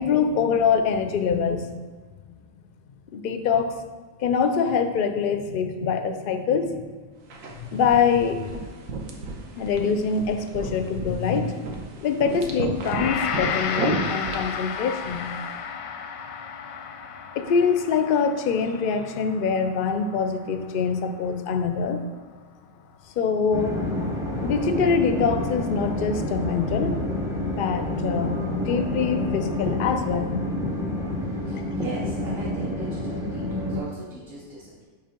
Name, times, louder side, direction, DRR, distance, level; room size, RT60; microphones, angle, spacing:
voice 1, 0.0-1.7 3.1-3.8 4.2-6.9 7.6-8.6 9.5-11.6 12.0-15.3 17.4-22.0 23.2-23.8 24.4-27.0 27.4-30.4, left 6 dB, 65° left, 8 dB, 0.5 m, -24 dB
sound 1, 7.3-15.5, right 4 dB, 75° right, 1.2 m, -34 dB
Gong, 12.8-22.0, left 7 dB, 85° left, 1.0 m, -33 dB
sound 2, 23.5-33.8, left 1 dB, 5° right, 0.6 m, -28 dB
voice 2, 31.2-34.8, right 2 dB, 45° right, -6 dB, 1.2 m, -39 dB
6.5 x 3.5 x 5.8 m, 1.4 s
omnidirectional pair, 1.4 m